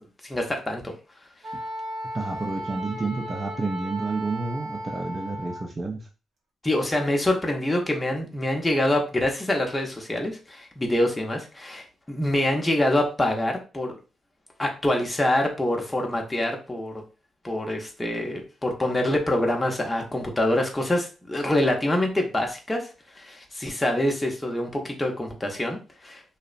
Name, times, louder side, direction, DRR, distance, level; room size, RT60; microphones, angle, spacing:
voice 1, 0.2-0.9 6.6-14.0 14.6-17.0 17.4-22.8 23.2-26.2, left 1 dB, 15° left, 1 dB, 0.7 m, -25 dB
Wind instrument woodwind instrument, 1.4-5.7, right 1 dB, 80° right, 0.7 m, -35 dB
voice 2, 2.1-6.1, right 3 dB, 35° right, 1 dB, 0.5 m, -30 dB
2.6 x 2.0 x 2.4 m, 0.33 s
cardioid pair, 70°, 0 cm